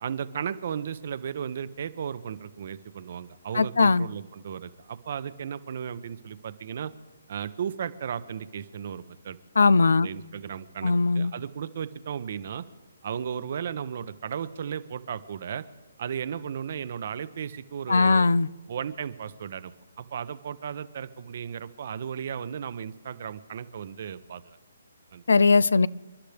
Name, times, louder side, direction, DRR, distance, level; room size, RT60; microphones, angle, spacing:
voice 1, 0.0-6.9 7.3-9.4 10.0-12.6 13.0-15.6 16.0-18.3 18.7-19.7 20.0-24.6 25.1-25.2, right 8 dB, 50° right, 14 dB, 0.8 m, -35 dB
voice 2, 3.5-4.1 9.6-10.1 10.8-11.3 17.9-18.5 25.3-25.9, left 4 dB, 80° left, 22 dB, 0.4 m, -19 dB
29.0 x 11.5 x 3.5 m, 1.3 s
hypercardioid pair, 150°, 0 cm